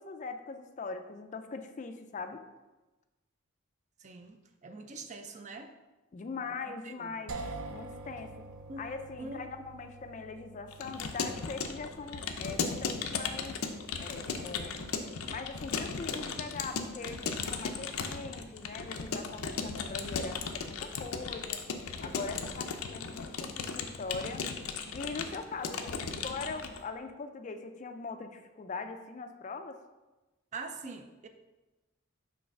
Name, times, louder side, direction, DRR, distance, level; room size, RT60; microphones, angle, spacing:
voice 1, 0.0-2.4 6.1-7.4 7.7-8.5 8.8-13.6 13.9-14.8 15.3-21.6 22.0-24.4 24.9-29.8, left 4 dB, 35° left, 7 dB, 0.3 m, -41 dB
voice 2, 4.0-5.7 6.8-7.2 8.7-8.8 9.2-9.4 22.1-22.5 30.5-31.3, right 3 dB, 35° right, 7 dB, 0.4 m, -44 dB
sound 1, 7.3-17.1, right 3 dB, 90° right, 0.6 m, -48 dB
Keyboard (musical) / Computer keyboard, 10.7-26.8, left 5 dB, 85° left, 0.5 m, -36 dB
5.5 x 3.2 x 5.3 m, 1.1 s
head